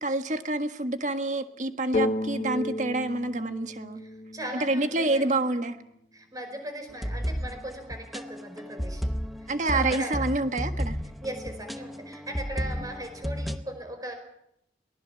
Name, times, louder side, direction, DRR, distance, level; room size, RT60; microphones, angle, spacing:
voice 1, 0.0-4.0 4.5-5.8 9.5-11.0, right 2 dB, 40° right, 8 dB, 1.6 m, -27 dB
sound 1, 1.9-5.6, left 2 dB, 35° left, 0.9 m, -33 dB
voice 2, 4.0-5.3 6.1-9.1 9.4-10.2 11.2-14.1, right 1 dB, 20° right, 5 dB, 5.0 m, -38 dB
sound 2, 6.9-13.6, equal, ahead, 0.9 m, -33 dB
22.5 x 19.0 x 7.1 m, 0.78 s
head